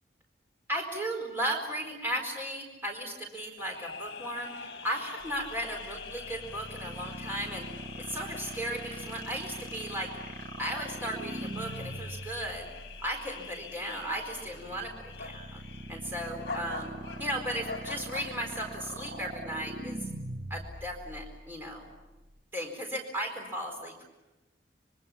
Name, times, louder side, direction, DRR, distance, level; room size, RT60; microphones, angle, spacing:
voice 1, 0.7-4.5 4.8-7.7 8.0-10.1 10.6-12.7 13.0-15.6 15.9-16.9 17.2-20.0 20.5-21.9 22.5-24.0, right 1 dB, 10° right, 0 dB, 4.4 m, -36 dB
sound 1, 3.6-19.3, left 5 dB, 60° left, 2.3 m, -44 dB
sound 2, 5.2-22.4, right 1 dB, 50° right, 1.5 m, -42 dB
26.0 x 24.5 x 7.4 m, 1.1 s
head